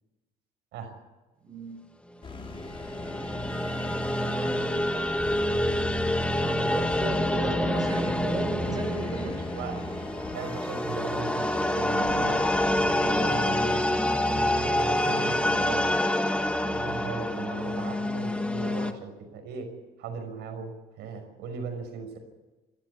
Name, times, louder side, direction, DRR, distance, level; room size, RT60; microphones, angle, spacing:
voice 1, 1.4-1.7 4.2-5.1 5.6-5.9 6.4-9.4, right 3 dB, 25° right, 5 dB, 4.7 m, -36 dB
sound 1, 2.2-13.7, left 4 dB, 30° left, 3.3 m, -43 dB
sound 2, 2.5-18.9, left 1 dB, 5° left, 1.7 m, -27 dB
voice 2, 7.0-7.5 8.0-8.1 8.7-9.8 10.3-12.4 12.7-15.9 16.6-19.7 20.0-22.2, right 5 dB, 85° right, 5 dB, 5.9 m, -38 dB
27.5 x 15.0 x 8.5 m, 1.2 s
cardioid pair, 110°, 17 cm